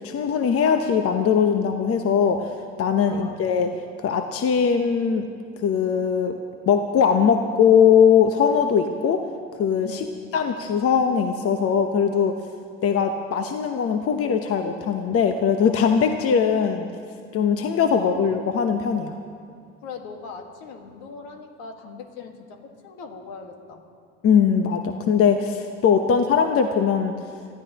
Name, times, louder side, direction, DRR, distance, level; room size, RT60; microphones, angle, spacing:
voice 1, 0.0-3.7 4.0-5.3 5.6-6.4 6.7-9.2 9.6-10.0 10.3-12.3 12.8-16.9 17.3-19.2 24.2-27.2, left 7 dB, 45° left, 6 dB, 1.0 m, -20 dB
voice 2, 3.0-3.4 9.8-10.1 16.8-16.9 18.0-18.3 19.8-23.8 26.0-26.2, left 5 dB, 70° left, 4 dB, 1.8 m, -40 dB
23.5 x 15.0 x 3.0 m, 2.3 s
hypercardioid pair, 70°, 32 cm